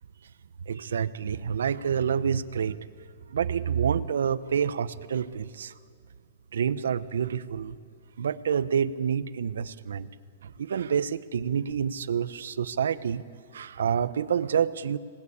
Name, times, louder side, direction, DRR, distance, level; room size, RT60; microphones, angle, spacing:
voice 1, 0.6-2.8 3.3-5.7 6.5-7.7 8.2-10.1 10.4-13.2 13.5-15.0, right 7 dB, 90° right, 15 dB, 0.9 m, -28 dB
26.5 x 19.5 x 8.6 m, 2.2 s
hypercardioid pair, 155°, 0 cm